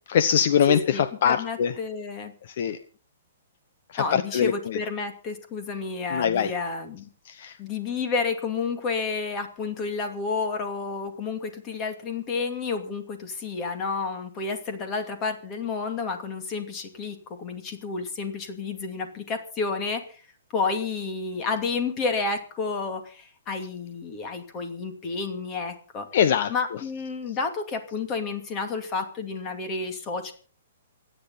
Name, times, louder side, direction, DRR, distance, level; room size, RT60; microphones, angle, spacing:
voice 1, 0.1-1.7 2.4-2.8 3.9-4.8 6.1-6.5 7.3-7.6 26.1-26.5, left 8 dB, 45° left, 13 dB, 0.9 m, -23 dB
voice 2, 0.7-2.3 4.0-7.1 7.6-20.2 20.5-26.1 26.5-30.3, left 4 dB, 20° left, 6 dB, 2.5 m, -30 dB
27.5 x 10.0 x 4.1 m, 0.39 s
hypercardioid pair, 170°, 0 cm